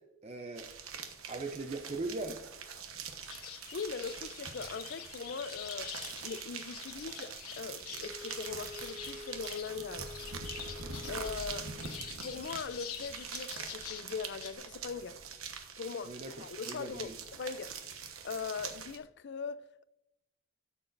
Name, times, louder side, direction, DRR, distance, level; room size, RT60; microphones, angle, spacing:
voice 1, 0.2-0.7 1.3-2.4 11.6-11.9 16.0-16.3 16.7-17.2, right 2 dB, 30° right, 0.5 m, -39 dB
sound 1, 0.6-19.0, right 6 dB, 75° right, 1.1 m, -44 dB
sound 2, 3.2-14.5, left 9 dB, 90° left, 1.1 m, -47 dB
voice 2, 3.7-5.9 6.2-10.2 11.1-11.7 12.2-15.2 15.8-17.8 18.2-19.9, left 5 dB, 50° left, 0.4 m, -41 dB
Wind instrument woodwind instrument, 8.0-12.2, left 4 dB, 5° left, 1.4 m, -48 dB
13.0 x 7.2 x 2.5 m
head